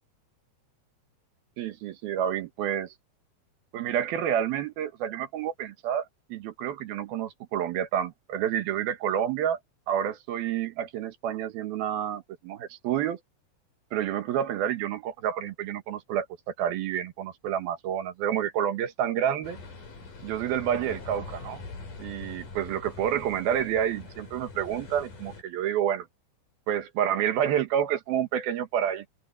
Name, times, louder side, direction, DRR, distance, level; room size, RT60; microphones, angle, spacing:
voice 1, 1.6-2.9 3.7-9.6 9.9-13.2 13.9-19.6 20.2-21.6 22.0-26.1 26.7-29.0, right 10 dB, 75° right, 3.1 m, -29 dB
sound 1, 19.4-25.4, left 3 dB, 55° left, 7.2 m, -43 dB
omnidirectional pair, 4.6 m